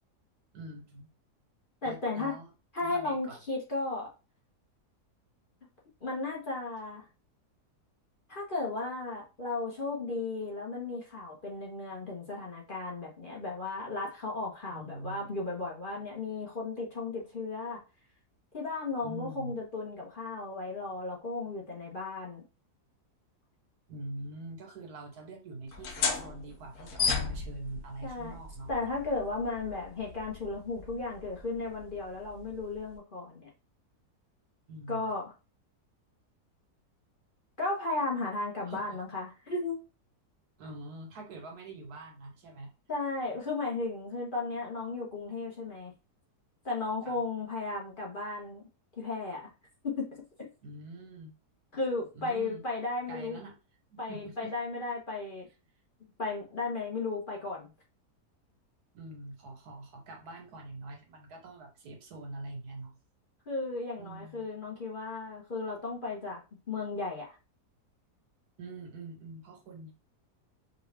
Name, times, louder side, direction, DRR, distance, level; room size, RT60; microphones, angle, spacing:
voice 1, 0.5-1.1 1.8-2.5 2.8-3.4 14.7-15.3 19.0-19.6 23.9-28.7 34.7-35.0 38.6-38.9 40.6-42.7 47.0-47.2 50.6-51.3 52.1-52.6 53.1-53.5 53.9-54.5 58.9-63.0 64.0-64.5 68.6-69.9, right 2 dB, 70° right, 3 dB, 1.5 m, -44 dB
voice 2, 1.8-2.4 2.7-4.1 6.0-7.0 8.3-17.8 18.5-22.4 28.0-28.4 28.7-33.5 34.9-35.3 37.6-39.8 42.9-45.9 46.6-48.7 49.0-49.5 49.8-50.2 51.7-53.4 54.0-55.5 56.2-57.7 63.5-66.4 66.7-67.3, left 3 dB, 35° left, -3 dB, 1.1 m, -35 dB
sound 1, 25.7-33.0, left 5 dB, 60° left, 1.0 m, -36 dB
4.8 x 2.5 x 3.4 m, 0.31 s
omnidirectional pair, 1.7 m